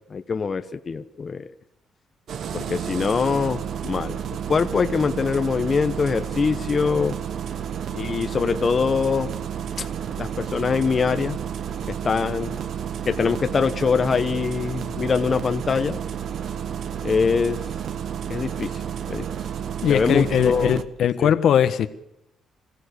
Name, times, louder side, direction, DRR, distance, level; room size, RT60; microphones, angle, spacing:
voice 1, 0.1-1.5 2.5-7.2 7.9-9.3 9.8-9.9 10.2-11.4 11.9-12.6 13.0-16.0 17.0-17.6 18.3-19.2 19.9-20.8 21.2-21.3, left 5 dB, 40° left, 1.1 m, -23 dB
Engine starting, 2.3-20.8, right 8 dB, 65° right, 1.2 m, -31 dB
voice 2, 19.8-21.9, left 9 dB, 70° left, 1.4 m, -20 dB
26.5 x 15.5 x 6.8 m
cardioid pair, 90°, 0 cm